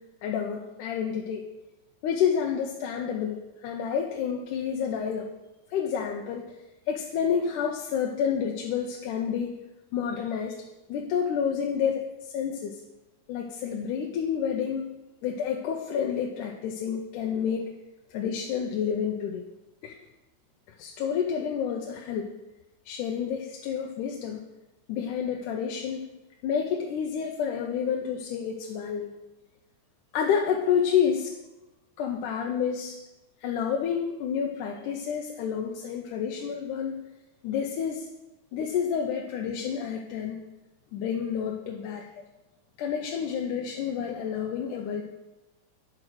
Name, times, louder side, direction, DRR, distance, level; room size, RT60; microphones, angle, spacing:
voice 1, 0.2-1.5 2.0-5.3 5.7-6.5 6.9-9.6 9.9-12.8 13.3-14.9 15.2-17.7 18.1-19.4 19.8-20.0 20.8-22.3 22.9-24.4 24.9-26.1 26.4-29.1 30.1-31.4 32.0-33.0 33.4-37.0 37.4-38.1 38.5-40.4 40.9-42.1 42.8-45.0, left 7 dB, 90° left, 1 dB, 2.3 m, -29 dB
10.5 x 4.9 x 6.2 m, 1.0 s
omnidirectional pair, 3.5 m